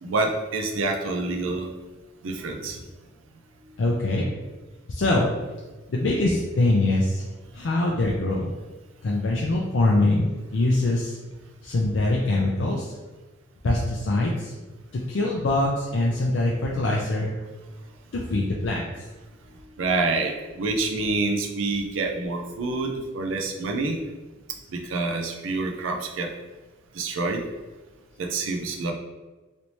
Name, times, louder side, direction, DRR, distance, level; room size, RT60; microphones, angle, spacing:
voice 1, 0.0-1.7 2.2-2.8 19.8-24.0 24.7-26.3 26.9-27.4 28.2-28.9, right 3 dB, 90° right, 3 dB, 0.5 m, -27 dB
voice 2, 3.8-4.2 4.9-5.3 5.9-7.2 7.5-8.5 9.0-10.3 10.5-11.2 11.6-12.8 13.6-14.5 15.1-17.3 18.1-18.8, left 2 dB, 70° left, -3 dB, 0.5 m, -23 dB
3.2 x 2.7 x 2.9 m, 1.2 s
head